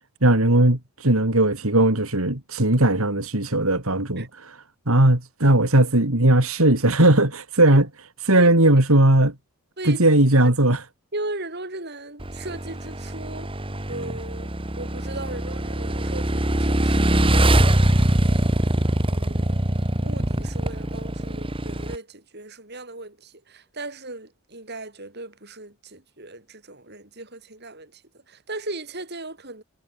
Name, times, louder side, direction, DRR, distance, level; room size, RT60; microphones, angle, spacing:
voice 1, 0.2-4.6 4.9-7.9 8.3-9.3 9.9-10.8, right 1 dB, 70° right, 3.7 m, -18 dB
voice 2, 11.1-13.5 13.9-17.7 19.1-28.0 28.3-29.6, right 2 dB, 45° right, 6.3 m, -37 dB
Motorcycle / Engine, 12.2-22.0, right 1 dB, 25° right, 2.2 m, -23 dB
head